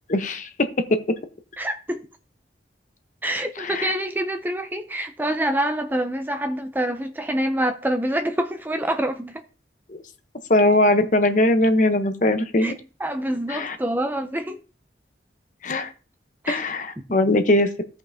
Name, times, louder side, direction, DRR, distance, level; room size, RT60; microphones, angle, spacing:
voice 1, 0.1-0.5 3.6-3.9 9.9-10.0 10.5-12.7 13.5-13.8 15.6-15.9 16.5-17.7, left 1 dB, 40° left, 0.9 m, -20 dB
voice 2, 1.6-2.0 3.2-9.4 12.6-12.7 13.0-14.6 16.4-16.6, right 1 dB, 10° right, 0.4 m, -26 dB
16.0 x 5.4 x 2.7 m
head